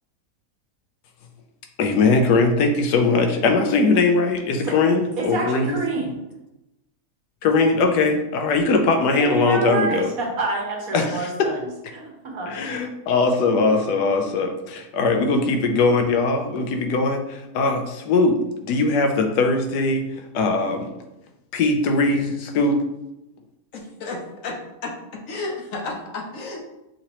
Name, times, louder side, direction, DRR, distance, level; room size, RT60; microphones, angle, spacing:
voice 1, 1.8-5.8 7.4-10.1 10.9-11.3 12.5-18.4 18.6-20.1 20.3-20.9 21.5-22.8, left 3 dB, 80° left, 4 dB, 1.2 m, -20 dB
voice 2, 5.2-6.2 9.1-11.7 11.9-12.0 12.3-12.5, right 2 dB, 65° right, 0 dB, 1.4 m, -27 dB
voice 3, 23.7-24.9 25.3-26.6, left 3 dB, 60° left, 0 dB, 1.0 m, -32 dB
5.8 x 2.9 x 3.0 m, 0.92 s
omnidirectional pair, 1.7 m